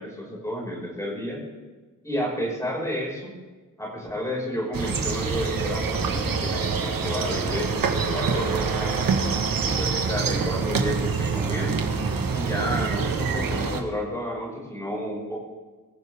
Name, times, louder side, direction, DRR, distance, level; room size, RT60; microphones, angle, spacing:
voice 1, 0.0-1.4 2.0-3.3 3.8-9.1 9.6-11.8 12.3-15.4, equal, 10° left, -3 dB, 6.1 m, -31 dB
sound 1, 4.7-13.8, right 5 dB, 85° right, 1.8 m, -26 dB
23.0 x 15.0 x 3.8 m, 1.3 s
wide cardioid pair, 155°, 33 cm